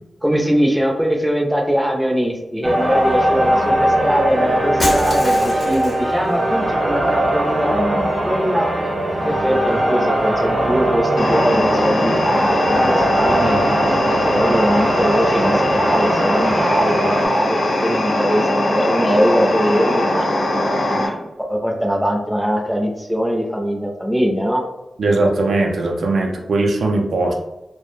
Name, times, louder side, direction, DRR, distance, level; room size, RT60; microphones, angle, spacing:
voice 1, 0.2-8.7 9.2-13.6 14.3-20.3 20.9-24.6, equal, ahead, 0 dB, 0.4 m, -21 dB
sound 1, 2.6-17.3, right 1 dB, 55° right, 0.8 m, -20 dB
Shatter, 4.8-6.1, left 1 dB, 40° left, 0.6 m, -26 dB
sound 2, 11.2-21.1, left 1 dB, 75° left, 0.8 m, -20 dB
voice 2, 25.0-27.3, right 2 dB, 90° right, 1 dB, 0.4 m, -19 dB
2.3 x 2.1 x 3.0 m, 0.97 s
wide cardioid pair, 125°, 0 cm